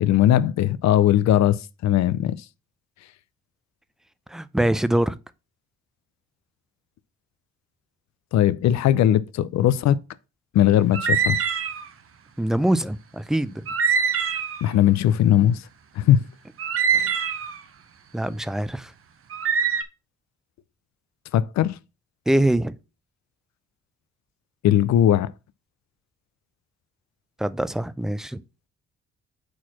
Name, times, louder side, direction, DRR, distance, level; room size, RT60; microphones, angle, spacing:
voice 1, 0.0-2.4 8.3-10.0 10.5-11.4 14.6-15.6 16.0-16.2 16.9-17.1 21.3-21.8 24.6-25.3, left 11 dB, 65° left, 0.5 m, -19 dB
voice 2, 4.3-5.2 12.4-13.7 18.1-18.9 22.3-22.7 27.4-28.4, right 1 dB, ahead, 0.4 m, -23 dB
sound 1, 10.9-11.9 13.7-14.7 16.6-17.6 19.3-19.8, right 6 dB, 45° right, 0.8 m, -23 dB
4.7 x 4.3 x 5.7 m
cardioid pair, 90°, 30 cm